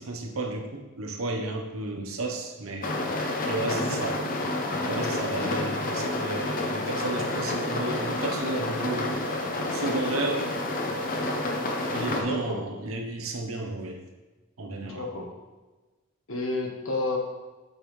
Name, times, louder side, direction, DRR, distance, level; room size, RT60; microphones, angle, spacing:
voice 1, 0.0-4.3 4.8-9.3 9.7-10.5 11.9-14.0 14.6-15.1, right 2 dB, 90° right, 3 dB, 0.9 m, -33 dB
sound 1, 2.8-12.2, left 2 dB, 40° left, 0.8 m, -29 dB
voice 2, 3.7-4.0 12.2-12.6 14.8-15.3 16.3-17.2, left 2 dB, 75° left, 0 dB, 1.3 m, -31 dB
8.1 x 5.2 x 3.2 m, 1.2 s
head